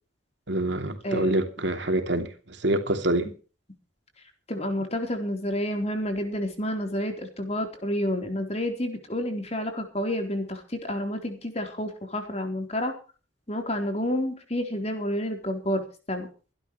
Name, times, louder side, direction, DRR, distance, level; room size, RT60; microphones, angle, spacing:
voice 1, 0.5-3.3, right 1 dB, 70° right, 2.9 m, -26 dB
voice 2, 4.5-12.9 13.5-16.3, left 1 dB, 35° left, 3.9 m, -29 dB
24.5 x 12.0 x 3.2 m
head